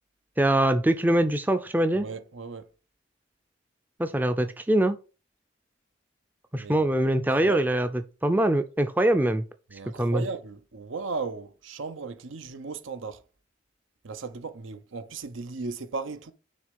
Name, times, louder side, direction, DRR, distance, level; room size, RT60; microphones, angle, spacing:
voice 1, 0.4-2.0 4.0-5.0 6.5-7.9 8.2-9.4 10.0-10.2, right 1 dB, 10° right, 0.4 m, -23 dB
voice 2, 1.9-2.7 6.5-6.9 7.4-7.7 9.7-13.2 14.0-16.3, right 4 dB, 85° right, 0.7 m, -36 dB
6.5 x 3.2 x 5.2 m
head